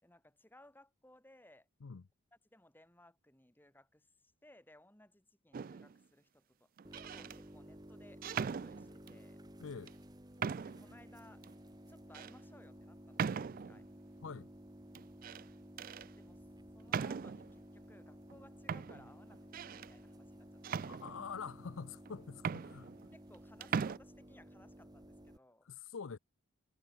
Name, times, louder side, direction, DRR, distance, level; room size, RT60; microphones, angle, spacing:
voice 1, 0.0-1.7 2.5-6.7 7.1-9.4 10.6-11.4 11.9-13.9 16.2-16.5 16.7-20.9 23.1-25.7, left 1 dB, 10° left, 2.0 m, -62 dB
sound 1, 5.5-6.0 6.8-7.4 8.2-9.2 9.9-10.0 10.4-10.9 11.4-11.5 12.1-12.3 13.2-13.8 14.9-15.4 15.8-16.1 16.9-17.5 18.3-18.4 18.7-19.9 20.6-21.5 22.1-22.2 22.4-23.4 23.6-24.0, right 6 dB, 40° right, 0.3 m, -39 dB
sound 2, 6.8-25.4, equal, 20° right, 2.1 m, -55 dB
voice 2, 9.6-10.0 14.2-14.5 20.8-22.9 25.6-26.2, left 5 dB, 65° left, 0.6 m, -45 dB
head